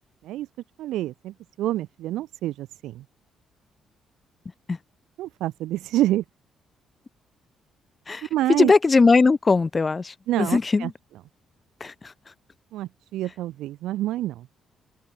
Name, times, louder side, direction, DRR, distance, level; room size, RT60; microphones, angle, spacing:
voice 1, 0.8-3.0 5.2-6.2 8.3-8.7 10.3-10.9 12.7-14.5, right 14 dB, 85° right, 1.9 m, -27 dB
voice 2, 8.6-10.9 11.8-11.9, left 4 dB, 30° left, 0.5 m, -19 dB
open air
cardioid pair, 90°, 0 cm